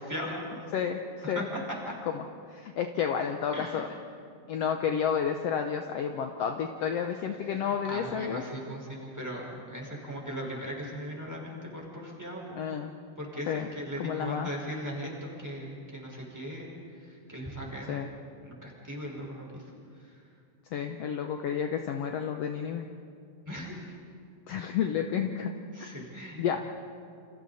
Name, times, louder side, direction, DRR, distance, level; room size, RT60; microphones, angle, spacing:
voice 1, 0.0-0.6 1.2-1.9 3.5-3.9 7.5-12.6 13.2-18.1 18.4-19.6 20.0-20.2 23.5-24.0 25.7-26.6, equal, 5° right, -3 dB, 4.8 m, -39 dB
voice 2, 0.7-1.5 2.1-2.2 2.5-3.9 4.5-8.4 12.6-12.9 13.5-13.7 14.0-14.5 17.9-18.1 20.7-22.9 24.5-25.5 26.4-26.6, left 7 dB, 65° left, 4 dB, 1.8 m, -31 dB
29.5 x 28.0 x 4.2 m, 2.4 s
omnidirectional pair, 3.4 m